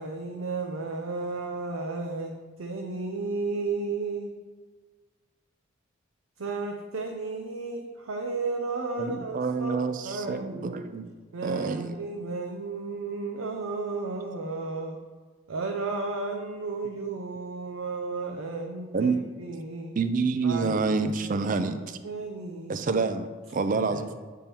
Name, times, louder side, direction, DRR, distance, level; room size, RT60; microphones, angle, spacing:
voice 1, 0.0-2.3 2.6-4.3 6.4-9.8 10.0-10.8 11.3-15.0 15.5-19.1 19.4-19.9 20.4-22.9 23.7-24.1, right 3 dB, 90° right, 2 dB, 0.6 m, -33 dB
voice 2, 9.0-11.1 11.4-11.9 18.9-19.2 20.0-22.0 22.7-24.1, right 4 dB, 40° right, 10 dB, 0.4 m, -28 dB
8.4 x 3.6 x 4.4 m, 1.4 s
head